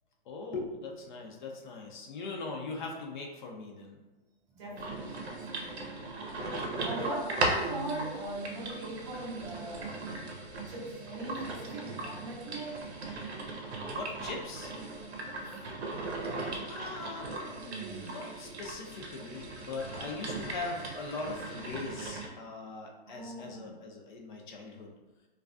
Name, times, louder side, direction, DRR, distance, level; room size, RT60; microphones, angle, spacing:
voice 1, 0.3-4.0 6.4-6.7 13.9-14.8 16.7-17.4 18.0-24.9, left 3 dB, 50° left, 0 dB, 0.5 m, -40 dB
voice 2, 4.5-6.0 6.8-10.4 10.7-12.9 15.3-15.5 23.1-23.8, right 2 dB, 30° right, -4 dB, 0.5 m, -40 dB
sound 1, 4.8-22.3, right 2 dB, 85° right, 0.7 m, -38 dB
2.3 x 2.2 x 2.4 m, 1.1 s
hypercardioid pair, 140°, 32 cm